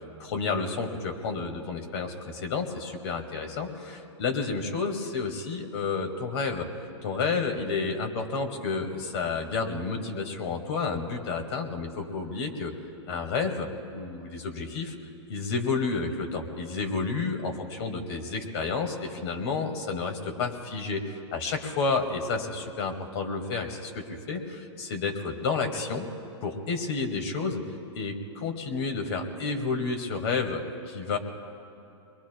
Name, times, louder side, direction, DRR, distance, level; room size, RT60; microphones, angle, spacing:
voice 1, 0.2-6.7 7.0-12.7 13.1-14.9 15.3-26.1 26.4-27.6 27.9-31.2, left 4 dB, 60° left, 4 dB, 2.1 m, -30 dB
24.0 x 22.0 x 2.3 m, 2.7 s
hypercardioid pair, 135°, 15 cm